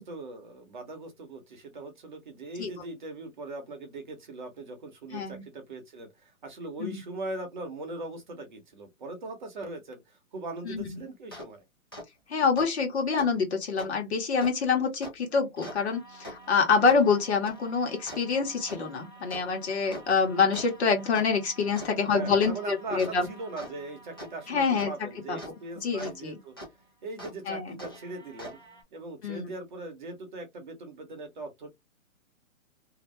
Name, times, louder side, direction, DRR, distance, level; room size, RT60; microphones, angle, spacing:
voice 1, 0.0-11.6 22.1-26.6 27.0-28.6 28.9-31.7, right 2 dB, 35° right, 0.8 m, -40 dB
voice 2, 5.1-5.4 6.8-7.0 10.6-10.8 12.3-23.3 24.5-24.9 25.3-25.4 25.8-26.4 27.5-27.8 29.2-29.5, left 5 dB, 50° left, 1.2 m, -26 dB
sound 1, 11.3-11.5 11.9-12.0 12.6-12.7 13.2-13.3 13.8-13.9 14.4-14.5 15.0-15.1 15.6-26.1 26.6-26.7 27.2-27.3 27.8-28.8, equal, 20° left, 0.4 m, -45 dB
2.7 x 2.1 x 3.2 m
hypercardioid pair, 160°, 41 cm